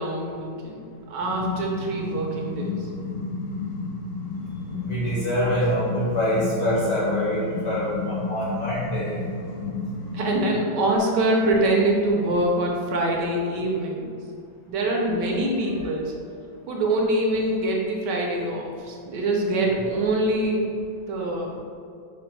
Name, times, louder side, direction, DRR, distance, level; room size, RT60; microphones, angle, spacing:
voice 1, 0.0-2.9 10.1-14.2 14.7-16.1 16.7-20.6 21.1-21.5, right 1 dB, 75° right, 0 dB, 1.1 m, -24 dB
sound 1, 1.2-10.6, left 3 dB, 85° left, 1.4 m, -32 dB
voice 2, 4.9-9.2 15.7-15.9, equal, 60° left, -8 dB, 0.7 m, -25 dB
5.0 x 2.0 x 4.4 m, 2.3 s
omnidirectional pair, 2.0 m